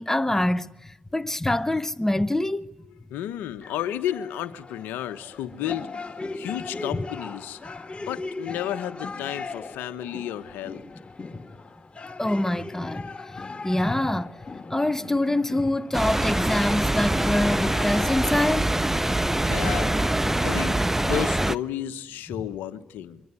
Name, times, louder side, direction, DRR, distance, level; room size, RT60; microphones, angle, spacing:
voice 1, 0.0-2.7 12.2-13.1 13.6-14.3 14.7-18.8, left 1 dB, 15° left, 1.4 m, -25 dB
voice 2, 3.1-5.9 6.3-7.6 8.0-10.8 18.0-18.1 19.5-19.9 20.4-23.2, left 11 dB, 85° left, 1.2 m, -32 dB
sound 1, 3.6-20.5, left 3 dB, 35° left, 3.1 m, -39 dB
sound 2, 15.9-21.6, right 1 dB, 10° right, 1.0 m, -24 dB
25.0 x 24.0 x 9.7 m
hypercardioid pair, 45°, 3 cm